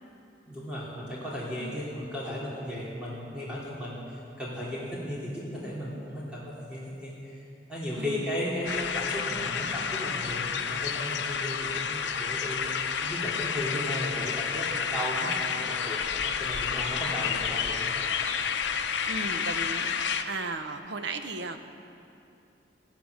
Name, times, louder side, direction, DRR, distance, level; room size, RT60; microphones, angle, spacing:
voice 1, 0.5-4.0 4.4-7.4 7.7-16.0 16.2-18.2, equal, 5° right, -8 dB, 2.7 m, -35 dB
voice 2, 7.9-8.3 19.0-21.6, right 3 dB, 85° right, 7 dB, 0.9 m, -36 dB
sound 1, 8.6-20.2, left 6 dB, 90° left, 0.7 m, -30 dB
15.0 x 11.5 x 6.5 m, 2.8 s
head